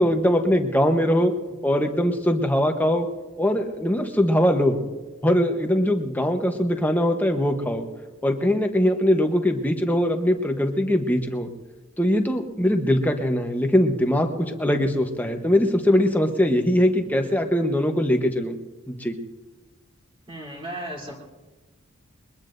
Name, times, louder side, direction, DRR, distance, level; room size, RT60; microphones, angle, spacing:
voice 1, 0.0-1.3 1.6-3.1 3.4-4.8 5.2-7.8 8.2-11.5 12.0-18.6 18.9-19.1, equal, 10° left, 4 dB, 1.0 m, -21 dB
voice 2, 20.3-21.1, right 1 dB, 25° right, -3 dB, 3.2 m, -35 dB
22.0 x 21.0 x 2.6 m, 1.2 s
head